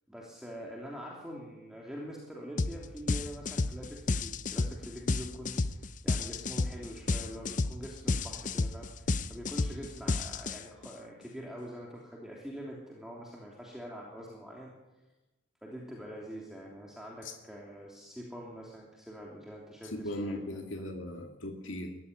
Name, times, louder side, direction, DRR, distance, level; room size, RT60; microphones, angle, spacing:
voice 1, 0.1-14.7 15.6-20.9, equal, ahead, -3 dB, 3.0 m, -45 dB
sound 1, 2.6-2.8 3.1-10.9, left 3 dB, 40° left, 0.7 m, -31 dB
voice 2, 19.8-22.0, left 1 dB, 75° left, 3 dB, 2.3 m, -38 dB
22.0 x 14.5 x 9.9 m, 1.1 s
head